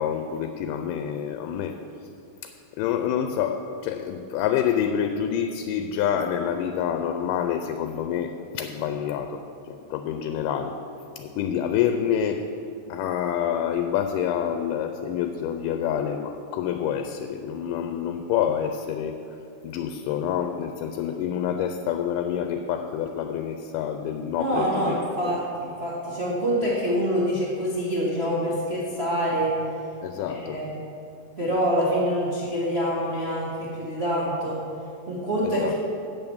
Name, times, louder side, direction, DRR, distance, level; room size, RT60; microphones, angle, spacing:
voice 1, 0.0-1.8 2.4-10.8 11.2-12.5 12.9-19.2 19.6-25.0 25.2-25.4 30.0-30.6 35.4-35.7, left 9 dB, 80° left, 7 dB, 2.1 m, -27 dB
voice 2, 24.3-29.5 30.3-30.8 31.4-34.6 35.1-35.7, equal, 90° right, -7 dB, 0.5 m, -26 dB
8.2 x 7.0 x 7.1 m, 2.6 s
omnidirectional pair, 3.9 m